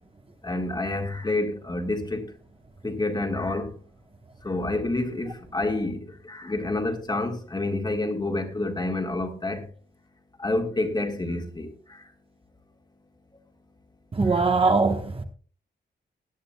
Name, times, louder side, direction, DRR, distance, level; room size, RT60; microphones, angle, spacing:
voice 1, 0.4-2.2 2.8-3.7 4.4-6.0 6.3-9.6 10.4-11.7 14.3-14.4, left 2 dB, 25° left, 1.7 m, -28 dB
voice 2, 14.1-15.2, right 4 dB, 30° right, 1.1 m, -21 dB
19.0 x 10.5 x 2.2 m
wide cardioid pair, 120°, 19 cm